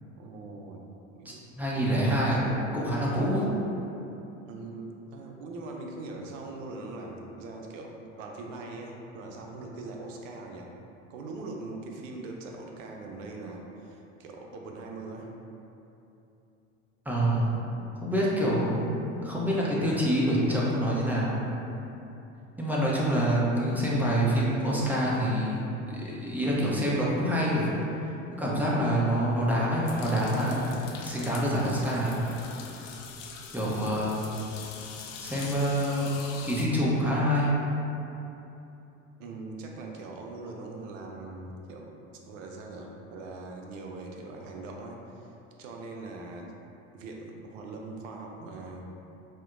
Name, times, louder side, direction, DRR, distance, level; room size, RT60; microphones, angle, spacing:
voice 1, 0.2-0.8 1.1-1.4 1.7-1.9 4.5-10.7 11.1-15.3 39.2-41.9 42.3-45.3 45.6-46.5 46.9-48.9, right 2 dB, 80° right, 1 dB, 0.6 m, -41 dB
voice 2, 1.2-3.5 17.1-21.5 22.6-28.0 28.4-30.7 31.0-32.2 33.5-34.4 35.2-36.1 36.4-37.6, equal, 5° right, -6 dB, 0.6 m, -26 dB
sound 1, 29.9-36.7, left 6 dB, 45° left, 0.4 m, -44 dB
4.2 x 2.1 x 2.5 m, 2.9 s
hypercardioid pair, 80°, 38 cm